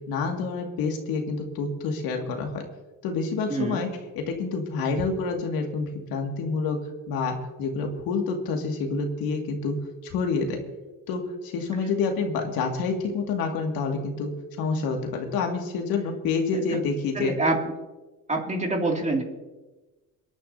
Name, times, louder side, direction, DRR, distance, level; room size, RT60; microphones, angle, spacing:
voice 1, 0.1-2.6 3.0-3.9 4.2-6.8 7.1-9.8 10.0-10.6 11.1-14.3 14.6-17.3, left 4 dB, 75° left, 2 dB, 2.2 m, -28 dB
voice 2, 3.5-3.8 16.5-16.8 17.1-17.7 18.3-19.2, right 2 dB, 20° right, 1 dB, 2.5 m, -26 dB
28.0 x 11.0 x 2.8 m, 1.1 s
cardioid pair, 110°, 36 cm